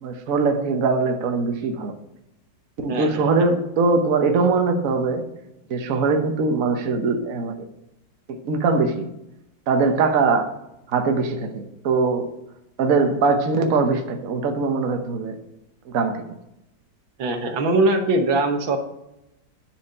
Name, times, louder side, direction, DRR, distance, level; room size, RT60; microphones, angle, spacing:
voice 1, 0.0-1.9 2.8-5.3 5.7-7.5 8.3-9.1 9.7-10.5 10.9-12.3 12.8-15.3 15.9-16.2, right 4 dB, 50° right, 5 dB, 1.2 m, -21 dB
voice 2, 2.9-3.3 17.2-18.8, right 2 dB, 90° right, 4 dB, 2.0 m, -21 dB
10.0 x 5.0 x 6.5 m, 0.88 s
omnidirectional pair, 2.0 m